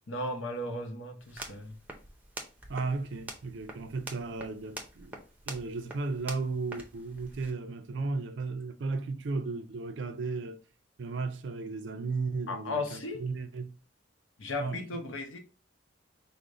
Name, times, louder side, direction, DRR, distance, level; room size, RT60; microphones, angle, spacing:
voice 1, 0.1-1.8 12.5-13.2 14.4-15.4, left 2 dB, 80° left, 0.9 m, -35 dB
sound 1, 1.2-7.5, right 2 dB, 10° right, 0.6 m, -46 dB
voice 2, 2.7-10.6 11.0-13.7 14.6-14.8, right 3 dB, 65° right, 0.4 m, -35 dB
4.9 x 2.1 x 3.7 m
head